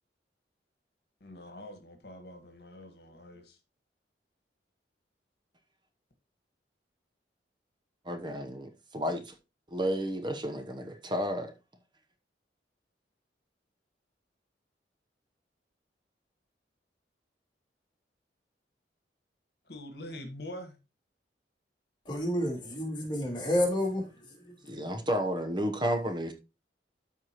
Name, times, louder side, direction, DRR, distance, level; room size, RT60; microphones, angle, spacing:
voice 1, 1.2-3.6 19.7-20.8, left 1 dB, 60° left, 1.6 m, -45 dB
voice 2, 8.0-9.3 9.7-11.5 24.6-26.3, equal, 25° right, 0.9 m, -32 dB
voice 3, 22.0-24.5, left 1 dB, 25° left, 2.8 m, -30 dB
13.0 x 4.7 x 3.0 m
head